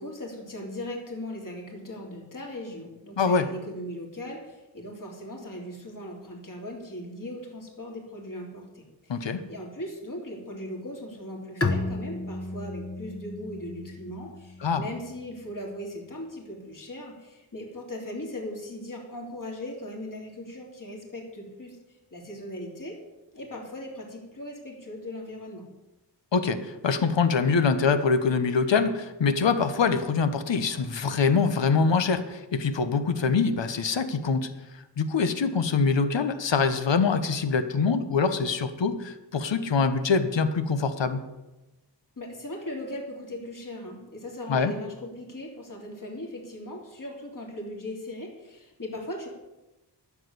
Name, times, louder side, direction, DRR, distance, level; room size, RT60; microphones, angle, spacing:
voice 1, 0.0-21.8 22.1-23.0 23.3-25.7 42.2-49.3, left 1 dB, 45° left, -1 dB, 3.4 m, -38 dB
voice 2, 3.2-3.5 9.1-9.4 14.6-14.8 26.3-34.5 35.0-41.2 44.5-44.7, left 5 dB, 85° left, 10 dB, 1.2 m, -24 dB
Bowed string instrument, 11.6-15.1, left 3 dB, 30° left, 1.2 m, -33 dB
12.0 x 7.3 x 9.6 m, 1.0 s
wide cardioid pair, 100°, 43 cm